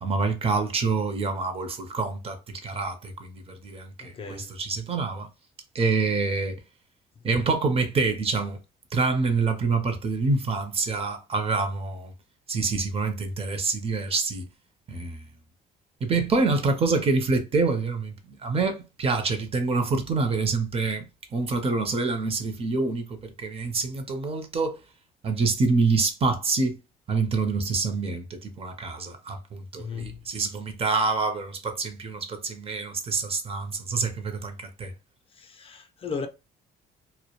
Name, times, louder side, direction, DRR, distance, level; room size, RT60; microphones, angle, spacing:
voice 1, 0.0-5.3 5.7-6.6 7.2-8.6 8.9-12.1 12.5-14.5 14.9-15.2 16.0-18.1 18.4-21.1 21.3-24.8 25.2-26.8 27.1-34.9, right 4 dB, 35° right, 0.6 m, -26 dB
voice 2, 4.1-4.5 29.8-30.2 35.4-36.3, left 5 dB, 35° left, 0.4 m, -35 dB
2.2 x 2.1 x 2.9 m
cardioid pair, 110°, 17 cm